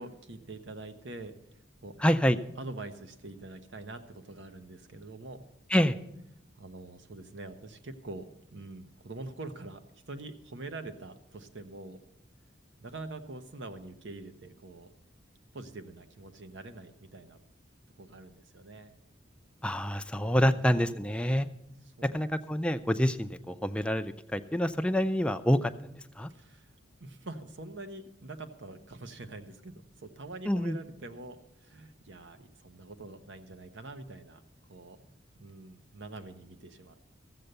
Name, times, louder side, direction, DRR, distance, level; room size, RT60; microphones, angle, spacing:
voice 1, 0.0-1.3 1.8-2.0 2.6-5.4 6.6-9.8 10.1-12.0 12.8-14.9 15.5-17.4 18.0-18.9 22.0-22.2 26.3-34.4 34.7-37.0, right 2 dB, 70° right, 10 dB, 0.9 m, -45 dB
voice 2, 2.0-2.4 5.7-6.0 19.6-21.5 22.1-26.3 30.5-30.8, equal, 5° left, 8 dB, 0.4 m, -27 dB
14.0 x 7.9 x 6.7 m, 0.83 s
head